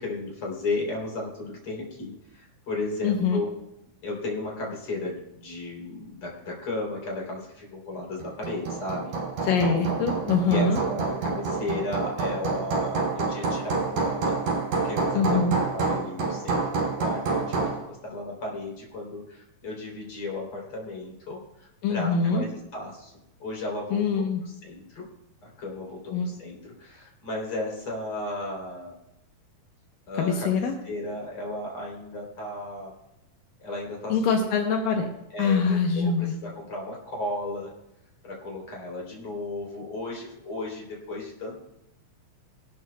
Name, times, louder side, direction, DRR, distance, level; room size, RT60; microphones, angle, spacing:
voice 1, 0.0-3.5 4.0-9.1 10.5-14.3 14.8-23.1 23.4-25.1 25.4-28.9 30.1-32.9 33.6-34.4 35.3-37.7 38.2-41.5, left 2 dB, 40° left, -2 dB, 4.0 m, -34 dB
voice 2, 3.0-3.4 9.4-10.8 15.1-15.6 21.8-22.4 23.9-24.4 26.1-26.4 30.2-30.7 34.1-35.1 35.4-36.3, left 5 dB, 80° left, 2 dB, 2.6 m, -24 dB
Hammer, 8.2-17.9, right 4 dB, 60° right, 4.2 m, -28 dB
20.5 x 12.5 x 2.3 m, 0.86 s
omnidirectional pair, 4.0 m